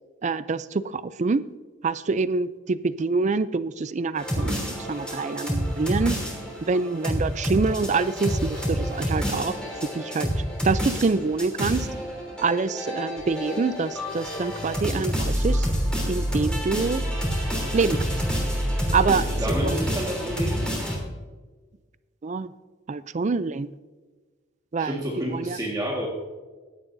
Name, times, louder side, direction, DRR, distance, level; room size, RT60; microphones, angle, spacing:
voice 1, 0.2-1.4 1.8-6.2 6.7-9.6 9.9-10.3 10.6-11.9 12.4-15.7 16.1-17.0 17.7-18.0 18.9-19.7 22.2-22.5 22.9-23.7 24.7-25.0 25.3-25.6, right 4 dB, 40° right, 15 dB, 0.4 m, -26 dB
sound 1, 4.2-21.0, equal, 5° left, 3.2 m, -28 dB
voice 2, 19.1-20.7 24.8-26.1, right 1 dB, 20° right, -3 dB, 1.7 m, -30 dB
16.0 x 11.0 x 2.7 m, 1.3 s
head